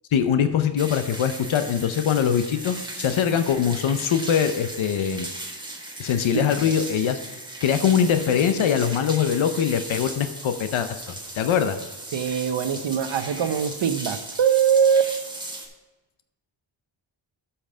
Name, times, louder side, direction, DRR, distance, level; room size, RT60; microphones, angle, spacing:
voice 1, 0.1-5.3 6.0-11.0 11.4-11.8, left 8 dB, 75° left, 9 dB, 0.7 m, -22 dB
sound 1, 0.8-15.7, right 1 dB, 10° right, 1.3 m, -37 dB
voice 2, 12.1-15.1, right 8 dB, 70° right, 9 dB, 0.9 m, -22 dB
8.5 x 5.8 x 5.5 m, 1.2 s
wide cardioid pair, 125°, 47 cm